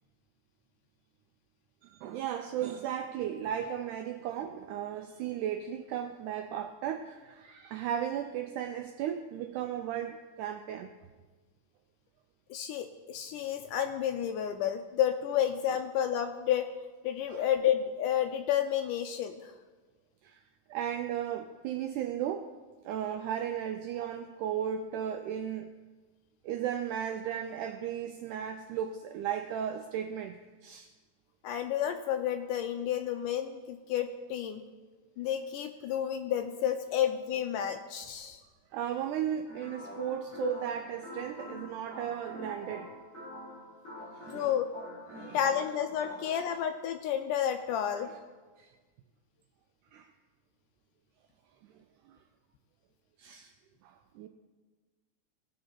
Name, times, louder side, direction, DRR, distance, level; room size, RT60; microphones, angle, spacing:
voice 1, 1.8-10.9 17.3-17.5 20.2-20.4 20.7-22.5 22.8-25.7 26.4-30.9 38.7-42.9 44.0-44.5 45.1-45.4 48.0-48.1 48.6-48.7 49.9-50.1 51.8-52.2 53.2-53.5 53.8-54.3, right 9 dB, 85° right, 7 dB, 1.7 m, -35 dB
voice 2, 12.5-16.7 17.0-19.5 31.4-34.6 35.2-38.4 40.0-40.1 40.4-40.5 44.3-44.7 45.3-48.1, left 10 dB, 85° left, 7 dB, 1.9 m, -31 dB
sound 1, 39.5-46.5, left 1 dB, 20° left, 4.2 m, -46 dB
17.5 x 6.4 x 4.4 m, 1.3 s
omnidirectional pair, 4.1 m